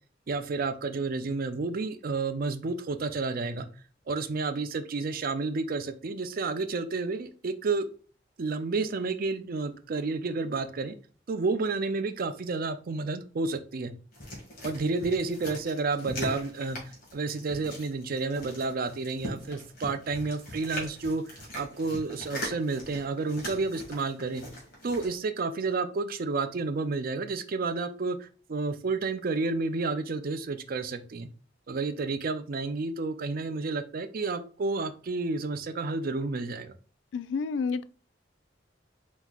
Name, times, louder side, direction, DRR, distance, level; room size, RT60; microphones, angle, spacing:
voice 1, 0.3-3.7 4.1-7.9 8.4-10.9 11.3-13.9 14.6-16.8 17.1-24.4 24.8-31.3 31.7-36.7, right 3 dB, 50° right, 0.5 m, -30 dB
sound 1, 14.1-25.2, equal, 50° left, 2.0 m, -41 dB
voice 2, 37.1-37.8, left 5 dB, 70° left, 0.3 m, -29 dB
4.5 x 4.1 x 2.4 m
head